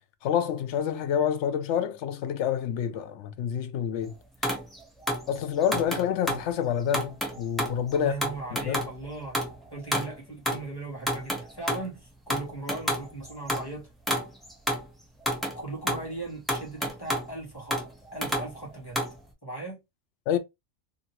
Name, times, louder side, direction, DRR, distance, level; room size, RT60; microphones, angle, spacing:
voice 1, 0.2-4.1 5.3-8.1 8.5-8.8 20.3-20.4, left 9 dB, 80° left, 0.9 m, -28 dB
sound 1, 4.4-6.5 6.9-10.2 10.5-10.7 10.9-11.9 12.3-13.7 14.1-14.9 15.2-16.1 16.5-17.3 17.7-19.2, equal, ahead, 0.6 m, -30 dB
voice 2, 7.9-9.4 9.7-13.9 15.5-17.8 18.1-19.0 19.4-19.8, right 2 dB, 20° left, 1.3 m, -38 dB
2.8 x 2.7 x 2.8 m
omnidirectional pair, 1.2 m